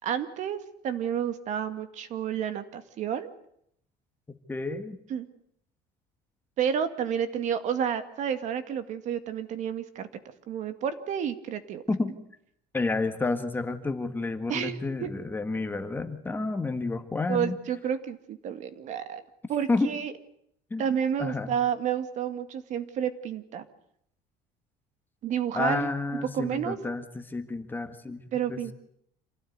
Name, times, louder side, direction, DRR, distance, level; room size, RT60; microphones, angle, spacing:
voice 1, 0.0-3.3 5.1-5.3 6.6-10.1 10.5-11.8 14.5-15.1 17.3-19.2 19.5-20.1 20.8-23.7 25.2-26.8 28.3-28.7, right 8 dB, 50° right, 10 dB, 2.1 m, -30 dB
voice 2, 4.3-5.0 11.9-12.1 12.7-17.6 19.7-19.9 20.7-20.8 21.2-21.5 25.5-28.2 28.5-28.7, left 3 dB, 10° left, 8 dB, 1.7 m, -30 dB
27.5 x 17.5 x 9.5 m, 0.72 s
cardioid pair, 155°, 16 cm